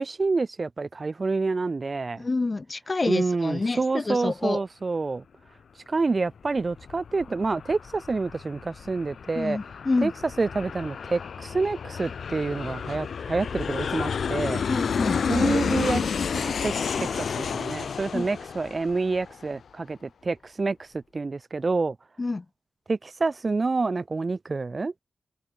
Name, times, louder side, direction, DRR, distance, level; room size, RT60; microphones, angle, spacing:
voice 1, 0.0-2.2 3.1-5.2 5.9-9.6 10.0-10.1 10.4-14.6 15.3-22.0 22.9-24.9, right 3 dB, 35° right, 0.3 m, -28 dB
voice 2, 2.2-4.6 9.4-10.1 14.7-15.2 17.0-17.1 18.1-18.3 22.2-22.5, left 3 dB, 30° left, 2.0 m, -28 dB
Aircraft, 6.4-19.6, left 6 dB, 75° left, 0.5 m, -31 dB
wide cardioid pair, 125°, 0 cm